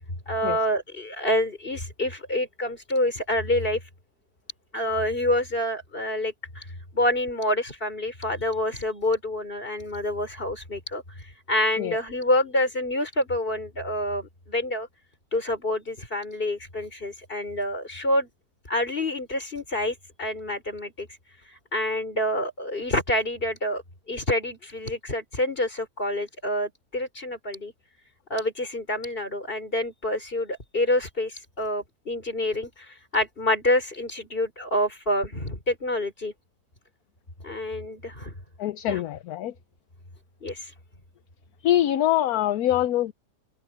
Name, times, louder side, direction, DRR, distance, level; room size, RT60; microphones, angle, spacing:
voice 1, 0.3-3.8 4.7-6.6 6.9-14.9 15.3-18.3 18.7-21.1 21.5-23.8 24.1-27.7 28.3-36.3 37.4-38.3 38.9-39.0 40.4-40.7, left 1 dB, 35° left, 4.9 m, -27 dB
voice 2, 38.6-39.5 41.6-43.1, left 13 dB, 70° left, 1.1 m, -24 dB
omnidirectional pair, 1.8 m